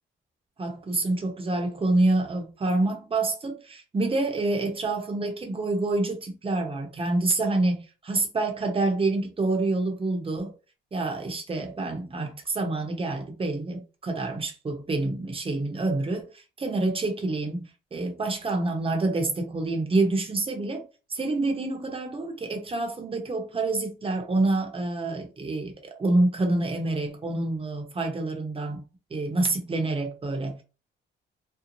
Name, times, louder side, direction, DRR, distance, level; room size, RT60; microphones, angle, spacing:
voice 1, 0.6-10.5 10.9-20.8 21.1-28.8 29.1-30.6, right 2 dB, 30° right, 0.8 m, -27 dB
2.6 x 2.1 x 2.9 m
cardioid pair, 90°, 20 cm